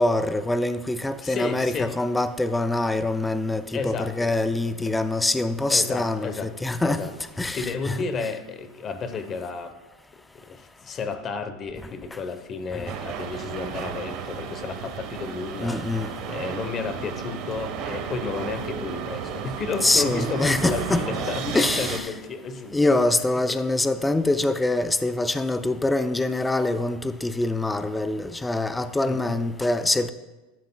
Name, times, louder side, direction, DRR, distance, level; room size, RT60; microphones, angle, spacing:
voice 1, 0.0-7.1 7.4-8.0 12.7-12.9 15.6-16.1 19.8-22.1 22.7-30.1, left 2 dB, 5° left, 0.4 m, -24 dB
voice 2, 1.2-1.9 3.7-4.3 4.8-4.9 5.7-6.5 6.8-7.1 7.5-9.8 10.3-22.9 23.4-23.6 29.1-29.4, left 4 dB, 25° left, 0.8 m, -32 dB
sound 1, 12.9-22.0, right 7 dB, 40° right, 1.1 m, -33 dB
15.5 x 12.0 x 2.2 m
supercardioid pair, 165°, 0 cm